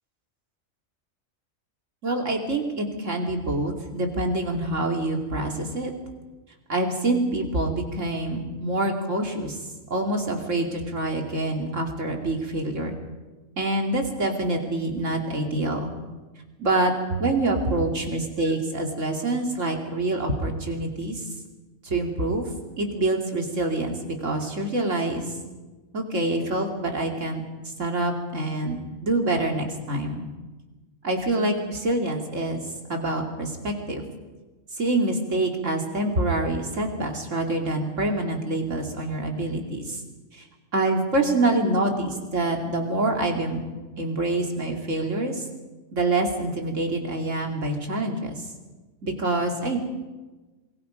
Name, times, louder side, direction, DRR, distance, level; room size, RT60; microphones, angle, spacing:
voice 1, 2.0-5.9 6.7-9.6 9.9-12.9 13.6-15.9 16.6-21.3 21.8-22.5 22.8-25.4 25.9-30.2 31.0-32.6 32.9-34.0 34.7-40.0 40.3-40.5 40.7-43.6 44.0-45.5 45.9-48.5 49.0-49.8, right 2 dB, 60° right, 2 dB, 3.3 m, -26 dB
26.5 x 23.5 x 5.3 m, 1.2 s
omnidirectional pair, 1.4 m